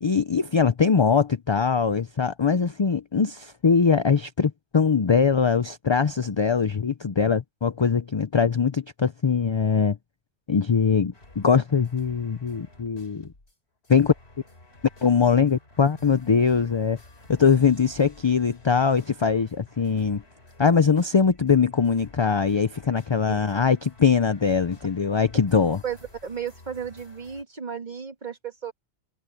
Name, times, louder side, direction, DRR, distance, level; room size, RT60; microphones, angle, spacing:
voice 1, 0.0-10.0 10.5-13.3 13.9-14.1 15.0-17.0 17.3-20.2 20.6-25.8, left 6 dB, 35° left, 0.5 m, -22 dB
sound 1, 11.1-13.5 13.8-27.4, left 2 dB, 70° left, 4.0 m, -51 dB
voice 2, 25.8-28.7, right 7 dB, 45° right, 1.9 m, -34 dB
omnidirectional pair, 1.1 m